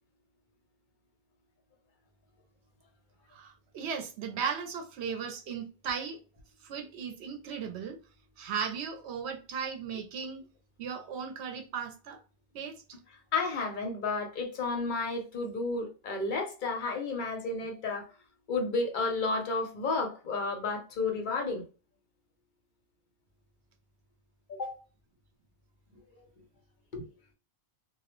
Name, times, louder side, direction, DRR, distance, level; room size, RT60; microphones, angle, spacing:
voice 1, 3.3-6.2 6.6-8.0 8.4-10.4 10.8-12.2 12.5-12.8, right 6 dB, 80° right, 0.8 m, -36 dB
voice 2, 13.3-18.1 18.5-21.6 24.5-24.8 26.9-27.0, left 3 dB, 55° left, 0.7 m, -32 dB
2.2 x 2.0 x 2.9 m
omnidirectional pair, 1.1 m